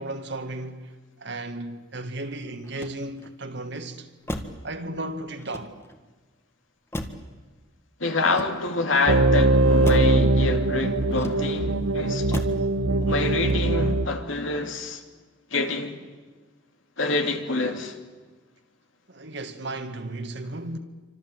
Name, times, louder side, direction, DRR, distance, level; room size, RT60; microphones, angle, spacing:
voice 1, 0.0-4.1 4.6-5.8 19.1-20.8, right 2 dB, 55° right, 2.0 m, -35 dB
Motor vehicle (road), 2.6-3.4 4.2-4.7 5.4-6.1 6.9-7.4 8.2-8.9 9.8-10.2 11.1-11.7 12.3-12.7 13.1-13.5, left 1 dB, 15° left, 1.6 m, -36 dB
voice 2, 8.0-12.3 13.0-15.0 15.5-16.0 17.0-17.9, left 3 dB, 70° left, 2.8 m, -27 dB
sound 1, 9.1-14.1, right 2 dB, 90° right, 1.2 m, -21 dB
28.0 x 25.5 x 7.8 m
head